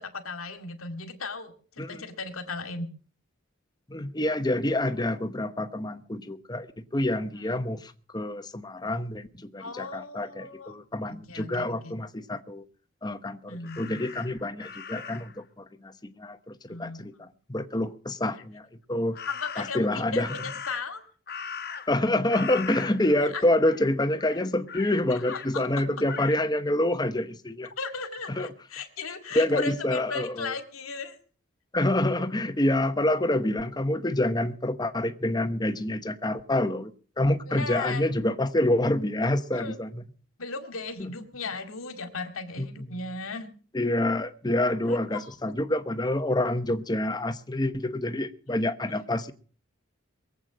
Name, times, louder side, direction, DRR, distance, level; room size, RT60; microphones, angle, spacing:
voice 1, 0.0-2.9 7.4-7.6 9.6-10.8 11.1-12.0 13.5-14.0 16.7-17.3 19.3-21.0 23.2-23.4 25.1-25.7 27.8-31.2 37.5-38.1 39.5-39.8 40.4-43.5 44.9-45.3, left 4 dB, 90° left, 7 dB, 2.2 m, -36 dB
voice 2, 3.9-6.7 6.9-12.6 13.0-17.1 17.5-19.2 19.6-20.3 21.9-27.7 28.4-28.5 29.3-30.5 31.7-36.9 37.2-40.0 41.0-41.1 42.6-42.7 43.7-49.3, left 1 dB, 20° left, 10 dB, 0.9 m, -27 dB
Crow, 13.6-15.4 19.1-19.9 20.2-22.0 22.3-23.3 23.6-23.9 24.2-25.5 26.1-26.4, left 6 dB, 50° left, 1.3 m, -40 dB
22.5 x 8.3 x 6.2 m, 0.42 s
head